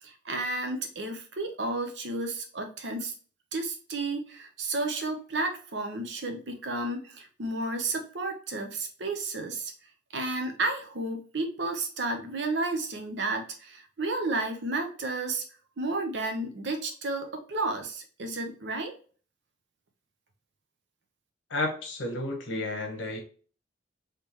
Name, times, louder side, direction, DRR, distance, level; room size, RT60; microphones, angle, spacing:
voice 1, 0.0-3.1 3.5-9.7 10.1-15.4 15.8-18.9, right 2 dB, 65° right, 4 dB, 0.8 m, -32 dB
voice 2, 21.5-23.2, left 2 dB, 85° left, 3 dB, 1.0 m, -32 dB
3.6 x 3.3 x 2.9 m, 0.40 s
head